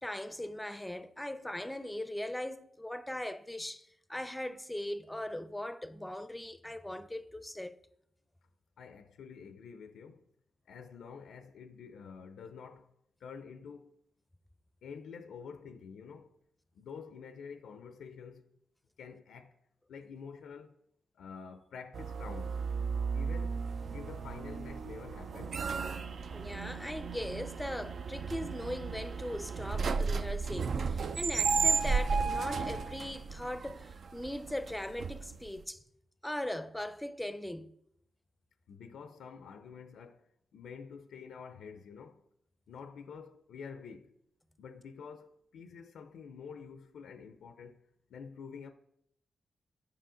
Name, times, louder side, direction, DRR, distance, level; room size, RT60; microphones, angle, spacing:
voice 1, 0.0-7.8 26.3-35.8 36.2-37.7, left 1 dB, 10° left, 0.5 m, -39 dB
voice 2, 8.8-10.2 10.7-12.9 13.2-13.9 14.8-16.3 16.7-18.5 19.0-19.5 19.9-20.7 21.1-22.7 23.1-23.6 23.9-25.6 38.7-40.2 40.5-42.2 42.7-44.1 44.6-47.8 48.1-48.7, left 6 dB, 85° left, 0.4 m, -48 dB
sound 1, 21.9-35.6, right 5 dB, 65° right, 0.4 m, -34 dB
7.6 x 5.3 x 3.7 m
cardioid pair, 65°, 0 cm